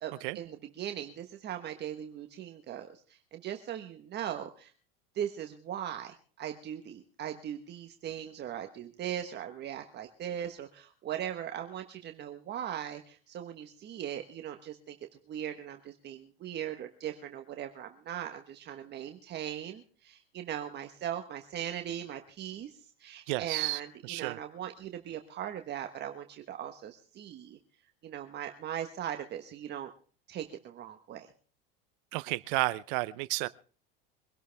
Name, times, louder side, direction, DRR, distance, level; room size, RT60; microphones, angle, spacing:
voice 1, 0.0-4.7 5.1-15.0 15.3-27.6 28.0-29.9 30.3-31.3, right 10 dB, 35° right, 6 dB, 1.4 m, -39 dB
voice 2, 23.3-24.4 32.1-33.5, right 22 dB, 65° right, 17 dB, 0.7 m, -32 dB
24.0 x 12.0 x 3.5 m, 0.40 s
supercardioid pair, 120°, 29 cm